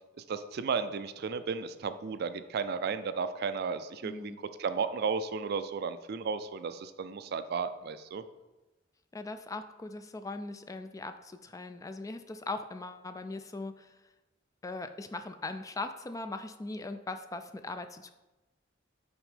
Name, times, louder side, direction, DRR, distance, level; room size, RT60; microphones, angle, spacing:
voice 1, 0.2-8.2, right 5 dB, 55° right, 11 dB, 0.4 m, -34 dB
voice 2, 4.0-4.4 9.1-13.9 14.6-18.1, left 2 dB, 15° left, 9 dB, 0.3 m, -40 dB
6.1 x 4.3 x 5.0 m, 1.1 s
head